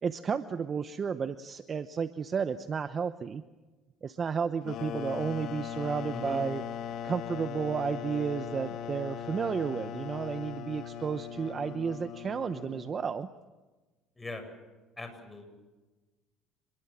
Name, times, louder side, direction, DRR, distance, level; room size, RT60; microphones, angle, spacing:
voice 1, 0.0-3.4 4.0-6.6 7.0-13.3, right 6 dB, 35° right, 11 dB, 1.0 m, -32 dB
sound 1, 4.6-13.1, left 8 dB, 60° left, 1.9 m, -39 dB
voice 2, 6.1-6.4 14.2-14.4 15.0-15.5, left 1 dB, 15° left, 6 dB, 7.7 m, -41 dB
27.5 x 22.0 x 7.5 m, 1.2 s
supercardioid pair, 90°, 0 cm